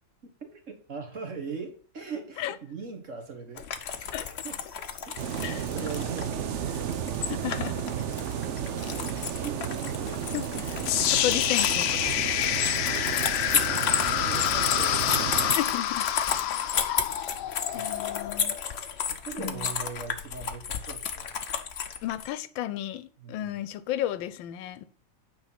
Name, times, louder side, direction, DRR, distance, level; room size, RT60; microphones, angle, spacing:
voice 1, 0.2-3.7 4.0-4.6 5.0-7.0 8.9-10.2 12.4-12.7 13.0-13.1 13.5-15.4 17.7-18.0 18.9-21.3 23.2-23.5, right 5 dB, 45° right, 1.7 m, -41 dB
sound 1, 3.6-22.3, left 7 dB, 55° left, 0.7 m, -33 dB
sound 2, 5.2-15.6, right 8 dB, 65° right, 0.7 m, -33 dB
voice 2, 7.3-7.8 10.3-10.6 11.1-12.0 15.5-16.1 16.9-17.0 17.7-18.5 19.4-19.7 22.0-24.8, left 12 dB, 90° left, 1.4 m, -33 dB
sound 3, 10.9-18.9, left 12 dB, 70° left, 1.1 m, -28 dB
8.8 x 4.8 x 5.7 m
omnidirectional pair, 2.0 m